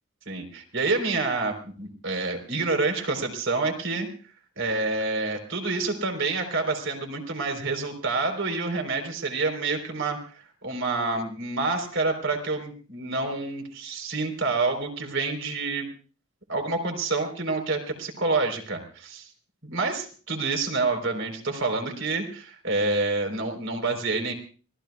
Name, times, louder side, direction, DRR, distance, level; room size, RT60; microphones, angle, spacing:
voice 1, 0.3-4.1 4.6-15.9 16.5-19.3 19.6-24.3, right 3 dB, 55° right, 4 dB, 4.0 m, -28 dB
25.5 x 19.0 x 2.4 m, 0.39 s
head